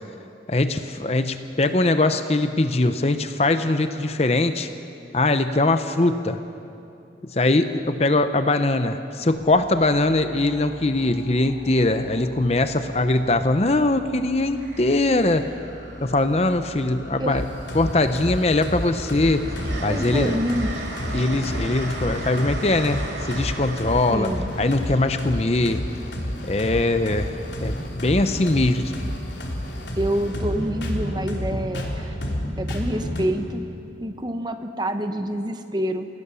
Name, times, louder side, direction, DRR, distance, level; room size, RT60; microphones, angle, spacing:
voice 1, 0.5-4.7 5.1-6.4 7.3-15.5 16.0-17.5 17.7-19.5 19.8-20.4 21.1-25.8 26.5-27.3 27.6-28.9, left 2 dB, 35° left, 9 dB, 0.7 m, -21 dB
sound 1, 9.3-22.5, right 1 dB, 45° right, 5.0 m, -43 dB
Train, 16.5-17.2 17.6-26.4 28.0-28.2, right 2 dB, 75° right, 2.8 m, -37 dB
sound 2, 17.3-33.3, equal, 75° left, 3.3 m, -30 dB
voice 2, 19.9-20.8 24.1-24.5 30.0-32.2 32.6-33.6 34.0-36.1, equal, 25° right, 7 dB, 1.1 m, -27 dB
28.0 x 17.0 x 7.0 m, 2.7 s
head